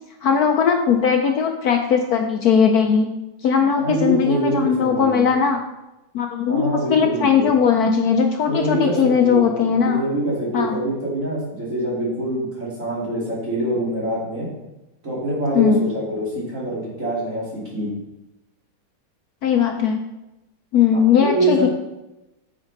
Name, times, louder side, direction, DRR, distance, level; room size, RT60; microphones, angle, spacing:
voice 1, 0.2-3.1 3.4-5.6 6.1-10.0 10.5-10.8 15.5-15.8 19.4-20.1 20.7-21.7, left 7 dB, 75° left, 4 dB, 0.9 m, -18 dB
voice 2, 3.8-5.3 6.5-7.5 8.5-14.5 15.0-17.9 20.9-21.7, right 1 dB, 35° right, -7 dB, 2.8 m, -25 dB
8.8 x 6.2 x 3.9 m, 0.95 s
omnidirectional pair, 2.2 m